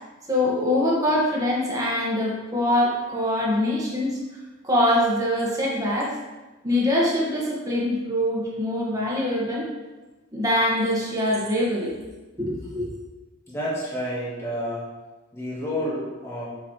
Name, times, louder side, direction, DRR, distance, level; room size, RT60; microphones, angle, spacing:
voice 1, 0.3-4.2 4.6-6.2 6.6-9.7 10.3-12.0 12.4-12.9, left 1 dB, 20° right, -5 dB, 1.8 m, -23 dB
voice 2, 13.5-14.8 15.3-16.5, equal, 15° left, -7 dB, 1.8 m, -29 dB
7.1 x 6.7 x 3.3 m, 1.2 s
head